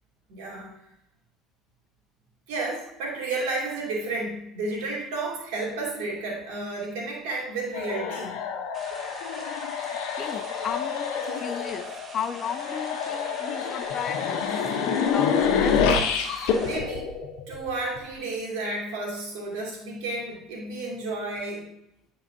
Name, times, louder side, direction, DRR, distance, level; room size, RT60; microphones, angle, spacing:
voice 1, 0.3-0.7 2.5-8.3 16.4-17.1 17.5-21.7, right 2 dB, 75° right, -2 dB, 2.4 m, -32 dB
sound 1, 7.7-18.0, left 6 dB, 70° left, 0.8 m, -27 dB
sound 2, 8.7-16.8, right 3 dB, 35° right, 1.2 m, -45 dB
voice 2, 10.2-15.8, left 7 dB, 45° left, 11 dB, 0.5 m, -35 dB
9.6 x 4.7 x 2.7 m, 0.79 s
hypercardioid pair, 75°, 0 cm